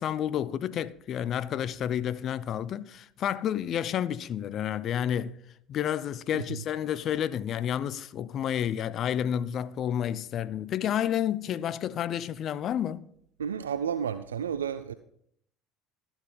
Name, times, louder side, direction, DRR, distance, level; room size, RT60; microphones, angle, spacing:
voice 1, 0.0-5.4 5.7-13.0, left 10 dB, 50° left, 0.6 m, -30 dB
voice 2, 13.4-14.9, right 8 dB, 85° right, 0.4 m, -31 dB
13.5 x 7.2 x 5.3 m
hypercardioid pair, 65°, 0 cm